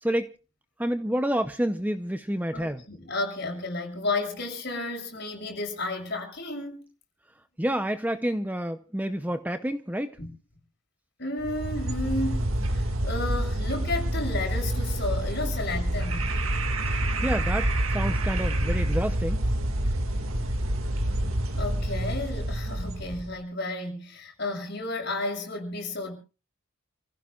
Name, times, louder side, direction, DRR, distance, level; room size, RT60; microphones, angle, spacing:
voice 1, 0.8-2.8 7.6-10.2 17.2-19.4, equal, 10° right, 0.6 m, -29 dB
voice 2, 2.5-6.8 10.2-10.3 11.2-16.3 21.5-26.1, left 2 dB, 50° left, 6.6 m, -32 dB
sound 1, 11.4-23.3, right 1 dB, 75° right, 2.0 m, -27 dB
29.5 x 15.5 x 2.4 m
head